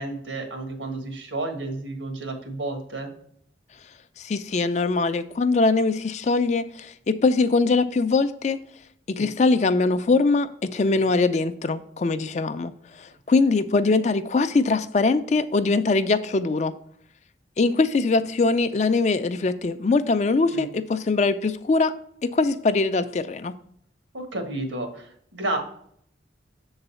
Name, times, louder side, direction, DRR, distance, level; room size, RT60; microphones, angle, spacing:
voice 1, 0.0-3.1 9.1-9.3 10.9-11.0 20.5-20.7 24.1-25.6, right 2 dB, 90° right, 4 dB, 1.5 m, -31 dB
voice 2, 4.2-8.6 9.1-12.7 13.0-16.7 17.6-21.9 22.2-23.5, left 3 dB, 35° left, 12 dB, 0.3 m, -22 dB
6.9 x 3.9 x 5.5 m, 0.66 s
head